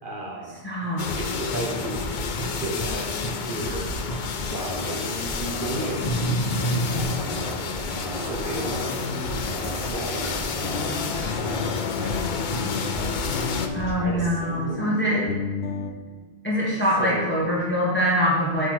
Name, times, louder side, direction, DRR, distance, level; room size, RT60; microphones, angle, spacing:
voice 1, 0.0-0.6 1.1-2.0 2.4-3.2 3.4-3.9 4.5-7.2 8.1-13.2 13.9-15.3 17.0-17.3, right 1 dB, 55° right, 1 dB, 1.3 m, -35 dB
voice 2, 0.6-1.1 13.7-15.2 16.4-18.7, equal, 10° left, -6 dB, 1.5 m, -24 dB
sound 1, 0.8-1.2 1.5-3.0 3.2-12.2 12.5-13.9, equal, 35° left, 1.0 m, -32 dB
sound 2, 1.0-13.7, left 5 dB, 55° left, 0.7 m, -30 dB
sound 3, 10.6-15.9, left 4 dB, 85° left, 1.0 m, -33 dB
8.2 x 4.1 x 6.4 m, 1.4 s
omnidirectional pair, 1.1 m